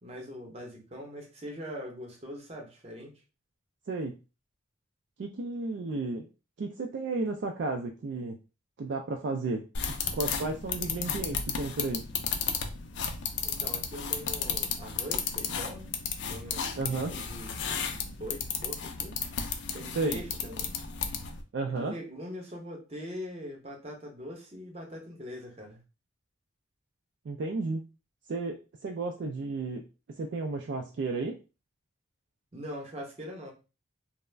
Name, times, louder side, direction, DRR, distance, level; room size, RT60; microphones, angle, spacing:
voice 1, 0.0-3.1 13.4-16.0 16.3-19.2 19.7-20.7 21.6-25.8 32.5-33.5, equal, 30° right, 1 dB, 0.7 m, -42 dB
voice 2, 5.2-6.3 6.6-8.4 8.8-9.6 10.1-12.1 16.8-17.1 19.9-20.2 21.5-21.9 27.3-27.8 28.3-29.8 30.2-31.4, right 3 dB, 55° right, 3 dB, 0.3 m, -33 dB
sound 1, 9.7-21.4, left 6 dB, 60° left, 0.4 m, -34 dB
2.3 x 2.0 x 3.2 m, 0.31 s
head